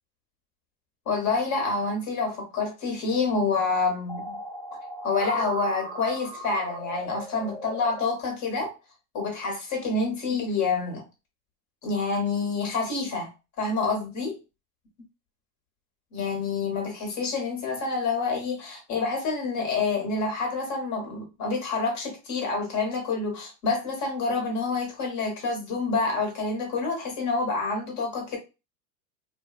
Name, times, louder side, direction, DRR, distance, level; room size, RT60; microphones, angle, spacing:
voice 1, 1.0-4.4 5.0-8.7 9.1-11.0 11.8-13.3 13.6-14.4 16.1-28.4, left 4 dB, 35° left, 1.3 m, -27 dB
sound 1, 4.1-8.0, equal, 5° left, 0.4 m, -39 dB
2.6 x 2.3 x 2.4 m
hypercardioid pair, 105°, 48 cm